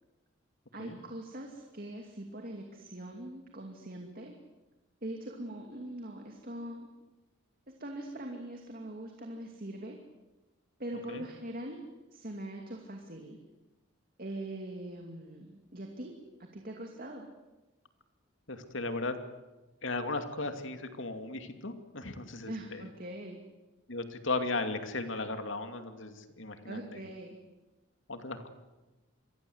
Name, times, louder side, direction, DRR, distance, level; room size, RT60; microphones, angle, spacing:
voice 1, 0.7-4.3 5.0-6.9 7.7-10.0 10.8-11.8 12.1-13.4 14.2-16.1 16.5-17.3 22.5-23.4 26.7-27.4, right 1 dB, 45° right, 2 dB, 2.6 m, -42 dB
voice 2, 18.5-19.2 19.8-22.8 23.9-27.0 28.1-28.5, left 3 dB, 70° left, 7 dB, 2.6 m, -36 dB
27.5 x 22.5 x 8.0 m, 1.1 s
head